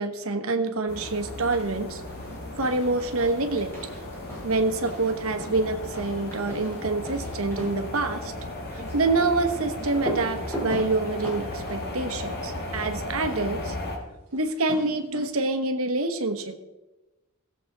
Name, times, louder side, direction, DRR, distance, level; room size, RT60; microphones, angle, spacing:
voice 1, 0.0-2.0 2.6-3.7 4.4-8.3 8.7-13.8 14.3-16.6, right 3 dB, 75° right, 7 dB, 1.2 m, -26 dB
sound 1, 0.9-14.0, left 1 dB, 50° left, 2.0 m, -36 dB
sound 2, 1.3-1.8 2.1-13.1 14.3-15.5, right 1 dB, 10° left, 3.8 m, -39 dB
17.0 x 7.4 x 4.0 m, 1.1 s
head